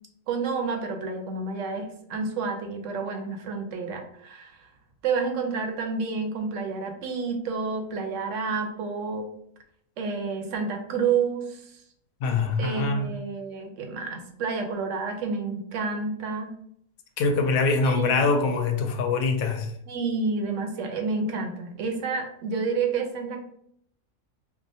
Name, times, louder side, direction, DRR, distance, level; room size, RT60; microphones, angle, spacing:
voice 1, 0.3-4.7 5.0-9.3 10.0-11.7 12.6-16.5 17.8-18.3 19.9-23.4, right 4 dB, 70° right, 0.9 m, -29 dB
voice 2, 12.2-13.1 17.2-19.7, left 4 dB, 90° left, 1.0 m, -24 dB
4.7 x 2.1 x 2.6 m
omnidirectional pair, 1.4 m